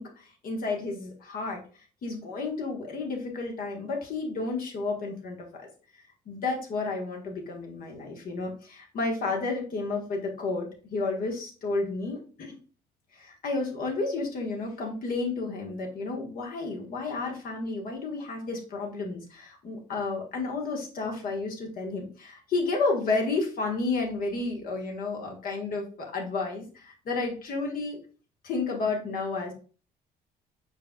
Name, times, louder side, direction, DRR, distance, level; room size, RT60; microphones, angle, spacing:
voice 1, 0.0-1.6 2.0-5.7 6.3-12.5 13.1-28.0 28.4-29.5, left 3 dB, 55° left, 1 dB, 1.3 m, -31 dB
5.0 x 4.4 x 2.2 m, 0.38 s
cardioid pair, 110°, 17 cm